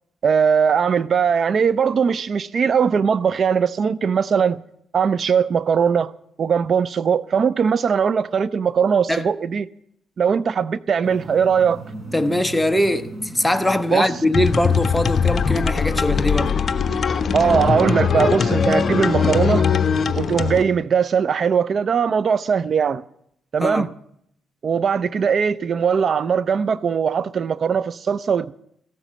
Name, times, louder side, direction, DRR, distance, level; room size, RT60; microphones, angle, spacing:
voice 1, 0.2-4.6 4.9-6.1 6.4-9.7 10.2-11.8 13.9-14.1 17.3-19.7 20.2-23.0 23.5-23.9 24.6-28.5, right 6 dB, 50° right, 0.5 m, -20 dB
sound 1, 11.0-16.1, right 2 dB, 15° right, 5.4 m, -37 dB
voice 2, 12.1-16.6 23.6-23.9, left 1 dB, 5° left, 1.0 m, -21 dB
sound 2, 14.3-20.6, left 6 dB, 45° left, 0.9 m, -20 dB
14.5 x 12.0 x 7.5 m
cardioid pair, 90°, 0 cm